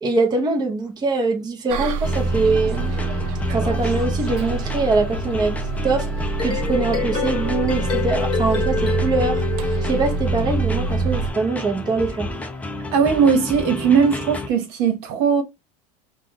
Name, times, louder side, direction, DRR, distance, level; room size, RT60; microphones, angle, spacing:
voice 1, 0.0-2.9 3.5-5.6 5.8-9.4 9.8-12.3, right 3 dB, 20° right, 1.0 m, -23 dB
Bus, 1.7-11.3, right 5 dB, 85° right, 0.8 m, -27 dB
sound 1, 2.0-14.5, left 1 dB, 5° left, 0.5 m, -28 dB
sound 2, 6.2-10.5, left 5 dB, 25° left, 1.2 m, -27 dB
voice 2, 12.9-15.4, right 6 dB, 65° right, 1.2 m, -18 dB
5.6 x 2.5 x 2.9 m
supercardioid pair, 140°, 19 cm